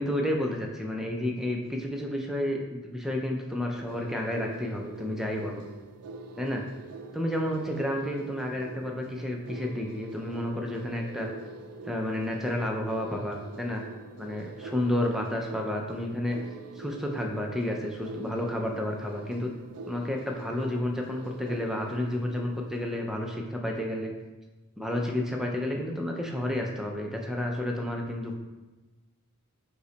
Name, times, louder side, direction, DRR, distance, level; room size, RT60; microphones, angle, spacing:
voice 1, 0.0-5.6 6.4-6.6 7.1-11.3 11.9-13.9 14.2-16.4 16.8-19.5 19.9-24.1 24.8-28.3, left 1 dB, ahead, 1 dB, 0.4 m, -31 dB
sound 1, 3.7-23.2, right 3 dB, 80° right, 0.3 m, -44 dB
5.4 x 2.1 x 3.8 m, 1.1 s
head